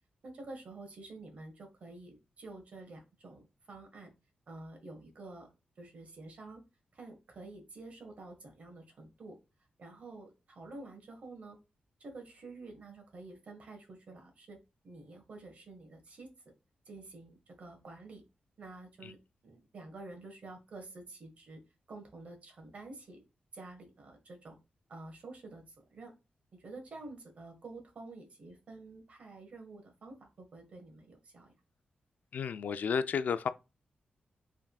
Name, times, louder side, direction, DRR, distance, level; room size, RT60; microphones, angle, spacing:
voice 1, 0.2-4.1 4.5-5.5 5.8-6.6 6.9-9.4 9.8-11.6 12.0-14.6 14.8-16.3 16.8-18.2 18.6-19.2 19.4-21.6 21.9-23.2 23.5-24.6 24.9-26.1 26.6-31.5, right 2 dB, 50° right, 1.4 m, -49 dB
voice 2, 32.3-33.5, left 6 dB, 65° left, 0.3 m, -32 dB
5.6 x 3.6 x 2.3 m
wide cardioid pair, 160°, 3 cm